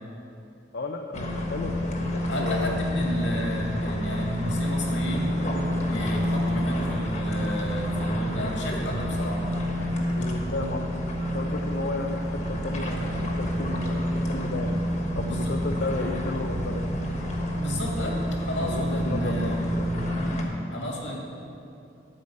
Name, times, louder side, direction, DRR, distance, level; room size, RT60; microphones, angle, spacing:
voice 1, 0.7-2.8 10.1-10.9 11.3-14.7 15.2-16.9 18.5-19.6, left 3 dB, 60° left, 3 dB, 0.6 m, -33 dB
sound 1, 1.1-20.4, equal, 40° left, 1.4 m, -28 dB
voice 2, 2.3-5.4 5.9-9.4 15.2-15.5 17.5-18.2 18.5-19.7 20.1-21.2, equal, 80° left, -1 dB, 2.3 m, -32 dB
12.0 x 5.0 x 8.5 m, 2.6 s
head